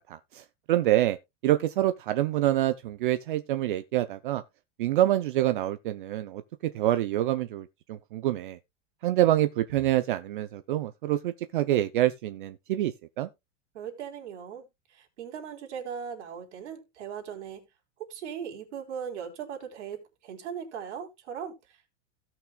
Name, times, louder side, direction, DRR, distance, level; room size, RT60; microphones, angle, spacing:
voice 1, 0.7-1.2 1.4-4.4 4.8-8.6 9.0-13.3, right 14 dB, 45° right, 0.6 m, -26 dB
voice 2, 13.7-17.7 18.1-21.9, right 7 dB, 70° right, 3.8 m, -39 dB
17.0 x 6.0 x 2.3 m
supercardioid pair, 180°, 36 cm